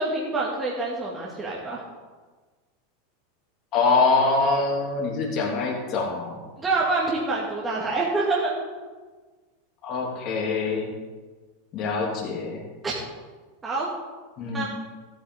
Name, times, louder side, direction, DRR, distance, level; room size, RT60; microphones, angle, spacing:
voice 1, 0.0-1.8 6.6-8.5 12.8-12.9 13.6-13.9 14.5-14.6, right 3 dB, 20° right, -4 dB, 2.3 m, -26 dB
voice 2, 3.7-6.4 9.8-10.9 11.7-12.6 14.4-14.7, left 3 dB, 45° left, -1 dB, 2.9 m, -24 dB
14.5 x 8.8 x 3.8 m, 1.4 s
hypercardioid pair, 95°, 0 cm